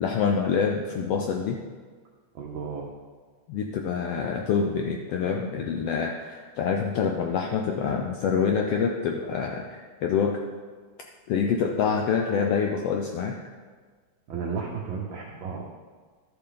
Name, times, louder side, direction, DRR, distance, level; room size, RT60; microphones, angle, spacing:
voice 1, 0.0-1.6 3.5-10.4 11.3-13.4, left 6 dB, 80° left, 2 dB, 1.4 m, -26 dB
voice 2, 2.3-2.9 14.3-15.6, right 5 dB, 80° right, 0 dB, 1.1 m, -33 dB
12.0 x 7.0 x 3.8 m, 1.5 s
omnidirectional pair, 3.3 m